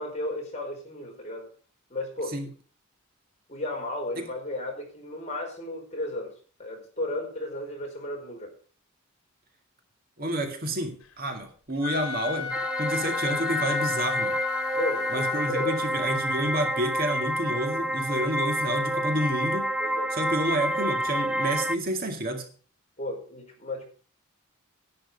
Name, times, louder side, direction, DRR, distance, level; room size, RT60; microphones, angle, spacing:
voice 1, 0.0-1.5 1.9-2.4 3.5-6.3 6.6-8.5 14.7-15.9 19.8-20.2 23.0-23.8, left 1 dB, 30° left, 1 dB, 5.0 m, -34 dB
voice 2, 10.2-14.4 15.1-19.7 20.1-22.5, right 1 dB, 45° right, 4 dB, 2.0 m, -29 dB
Wind instrument woodwind instrument, 11.7-16.1, left 8 dB, 75° left, 2.1 m, -33 dB
sound 1, 12.5-21.8, equal, 5° right, 0.5 m, -29 dB
11.0 x 11.0 x 5.2 m, 0.41 s
head